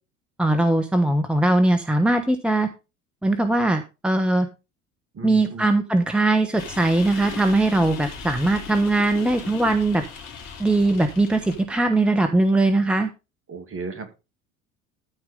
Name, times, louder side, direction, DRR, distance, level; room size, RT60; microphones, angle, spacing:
voice 1, 0.4-2.7 3.2-4.5 5.2-10.0 10.6-13.1, right 2 dB, 5° right, 8 dB, 1.1 m, -20 dB
voice 2, 5.1-5.7 13.5-14.1, right 3 dB, 35° right, 7 dB, 2.8 m, -35 dB
sound 1, 6.6-11.6, left 6 dB, 55° left, 3.0 m, -38 dB
13.5 x 4.7 x 5.1 m, 0.28 s
figure-of-eight pair, 65°, 39 cm